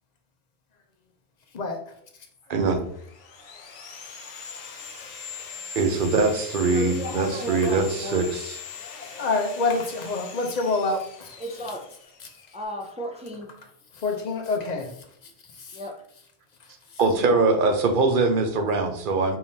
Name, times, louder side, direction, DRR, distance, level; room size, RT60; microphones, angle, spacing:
voice 1, 2.5-2.8 5.7-8.6 17.0-19.4, right 3 dB, 55° right, 0.8 m, -22 dB
Sawing, 2.8-12.6, left 5 dB, 75° left, 0.9 m, -41 dB
voice 2, 6.7-8.3 11.4-11.9 12.5-13.5 15.7-16.0, equal, 10° right, 0.3 m, -34 dB
voice 3, 8.8-11.4 13.9-15.0 15.5-15.8, left 3 dB, 45° left, 0.7 m, -27 dB
4.6 x 3.5 x 2.7 m
omnidirectional pair, 1.1 m